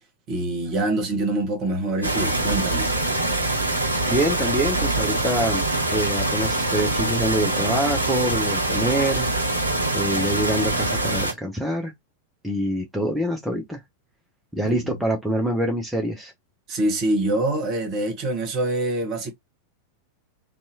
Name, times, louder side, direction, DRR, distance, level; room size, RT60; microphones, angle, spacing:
voice 1, 0.3-2.9 14.6-15.0 16.7-19.3, right 2 dB, 35° right, 1.2 m, -25 dB
sound 1, 2.0-11.3, right 2 dB, 90° left, 0.8 m, -24 dB
voice 2, 4.1-9.3 9.9-11.9 12.4-13.8 14.5-16.3, right 1 dB, 5° right, 0.7 m, -25 dB
2.7 x 2.3 x 2.7 m
figure-of-eight pair, 90°, 0 cm